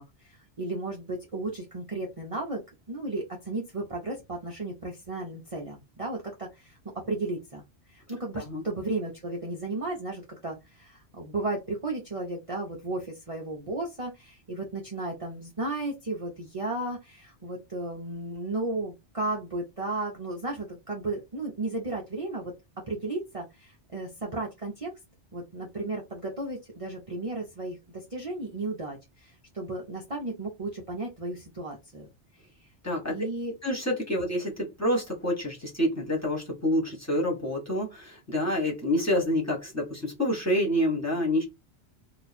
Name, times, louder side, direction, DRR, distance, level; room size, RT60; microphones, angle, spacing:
voice 1, 0.0-2.6 2.9-6.8 7.1-7.6 7.9-22.5 22.9-24.9 25.3-32.1 33.1-33.5 34.2-34.3, right 2 dB, 35° right, 0.7 m, -34 dB
voice 2, 32.8-33.1 33.6-41.4, left 1 dB, 15° left, 1.3 m, -27 dB
3.0 x 2.3 x 4.2 m
omnidirectional pair, 1.1 m